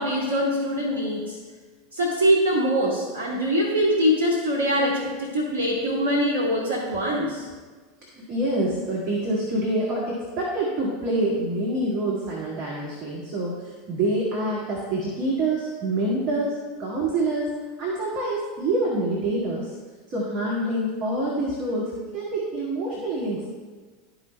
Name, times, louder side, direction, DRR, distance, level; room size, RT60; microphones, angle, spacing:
voice 1, 0.0-1.4 1.9-7.5, equal, 65° right, -3 dB, 1.2 m, -23 dB
voice 2, 8.1-17.5 17.8-19.7 20.1-23.4, right 1 dB, 40° right, -6 dB, 1.8 m, -26 dB
12.5 x 4.9 x 2.3 m, 1.4 s
figure-of-eight pair, 80°, 0 cm